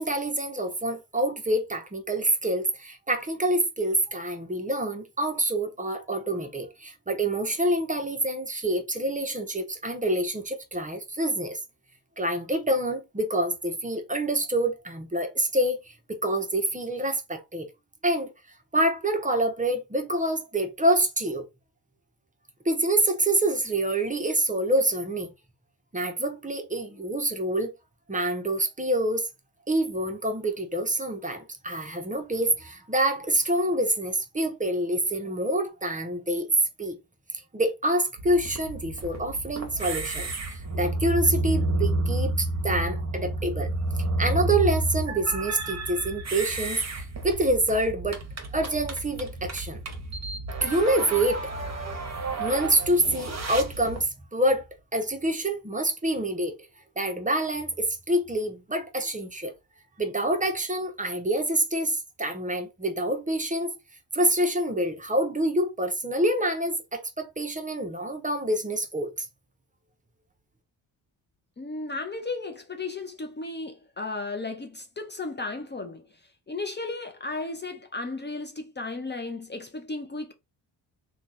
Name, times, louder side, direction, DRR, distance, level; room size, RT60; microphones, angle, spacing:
voice 1, 0.0-11.6 12.2-15.9 16.2-17.7 18.0-18.3 18.7-21.4 22.6-25.3 25.9-27.7 28.1-29.3 29.7-36.5 36.8-37.0 37.5-43.7 44.2-48.2 48.5-49.8 50.6-51.4 52.4-54.6 54.9-56.5 57.0-59.5 60.0-63.7 64.1-69.3, right 1 dB, 20° right, 0.9 m, -26 dB
sound 1, 38.2-54.0, right 2 dB, 40° right, 1.1 m, -30 dB
voice 2, 71.6-76.0 76.5-80.3, left 3 dB, 25° left, 0.7 m, -34 dB
2.9 x 2.4 x 4.0 m
supercardioid pair, 60°, 42 cm